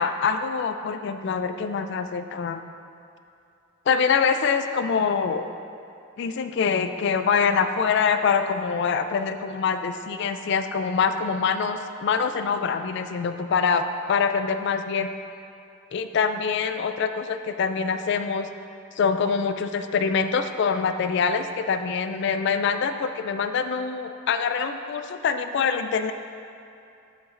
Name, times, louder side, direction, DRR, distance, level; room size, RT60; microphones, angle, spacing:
voice 1, 0.0-2.6 3.9-5.5 6.2-15.1 15.9-18.5 19.0-26.1, left 6 dB, 55° left, 9 dB, 0.3 m, -25 dB
7.5 x 6.9 x 2.5 m, 2.6 s
head